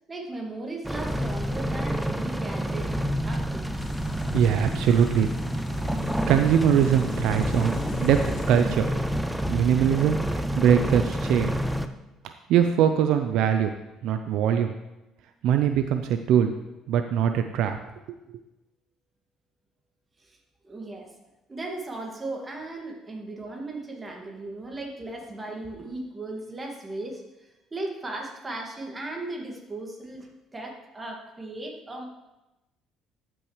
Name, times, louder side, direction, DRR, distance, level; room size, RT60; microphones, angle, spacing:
voice 1, 0.1-2.9 3.2-3.9 20.2-20.4 20.6-21.1 21.5-32.1, right 2 dB, 25° right, 1 dB, 2.0 m, -37 dB
sound 1, 0.8-11.9, equal, 5° right, 0.6 m, -28 dB
sound 2, 3.8-8.8, left 5 dB, 65° left, 0.9 m, -39 dB
voice 2, 4.3-5.3 6.3-8.2 8.5-8.9 9.5-11.6 12.5-13.7 14.0-14.7 15.4-16.5 16.9-17.8 18.1-18.2, right 9 dB, 75° right, 7 dB, 0.5 m, -22 dB
13.0 x 6.1 x 3.2 m, 0.98 s
supercardioid pair, 90°, 0 cm